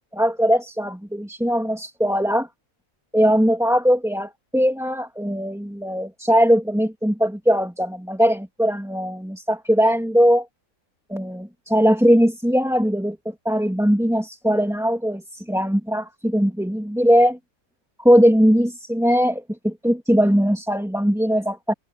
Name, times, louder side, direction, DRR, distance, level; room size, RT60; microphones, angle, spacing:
voice 1, 0.1-2.5 3.1-10.5 11.1-17.4 18.0-21.7, equal, ahead, 2.0 m, -20 dB
omnidirectional pair, 1.5 m